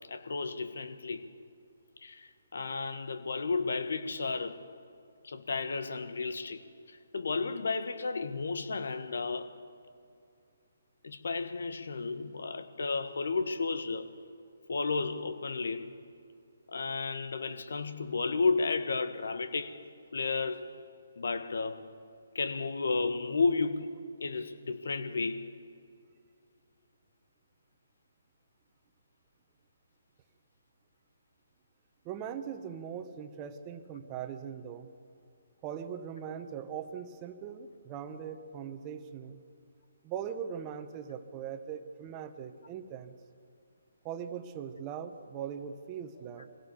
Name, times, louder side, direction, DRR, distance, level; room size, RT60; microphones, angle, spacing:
voice 1, 0.1-1.3 2.0-4.6 5.2-6.6 6.9-9.5 11.0-14.1 14.7-16.0 16.7-19.8 20.1-20.7 21.2-21.9 22.3-25.5, left 4 dB, 70° left, 1.5 m, -33 dB
voice 2, 32.0-34.9 35.6-39.4 40.0-43.1 44.0-46.5, right 8 dB, 25° right, 1.3 m, -40 dB
23.5 x 16.5 x 7.2 m
figure-of-eight pair, 145°, 0 cm